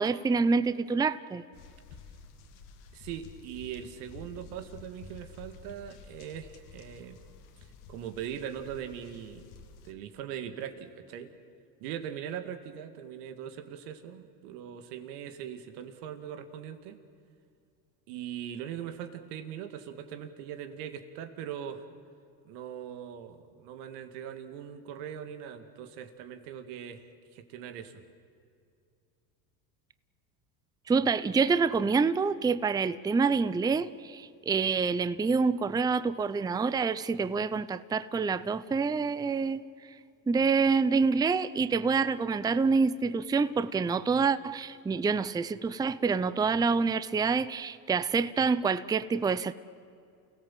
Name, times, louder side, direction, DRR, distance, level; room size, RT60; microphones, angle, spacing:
voice 1, 0.0-1.4 30.9-39.6 40.3-49.5, right 5 dB, 10° right, 0.5 m, -27 dB
sound 1, 1.5-9.9, left 5 dB, 75° left, 2.2 m, -51 dB
voice 2, 2.9-7.2 7.6-9.5 9.8-11.3 11.8-17.0 18.1-21.9 22.4-28.0, right 9 dB, 75° right, 2.2 m, -41 dB
28.5 x 17.0 x 7.6 m
supercardioid pair, 95°, 47 cm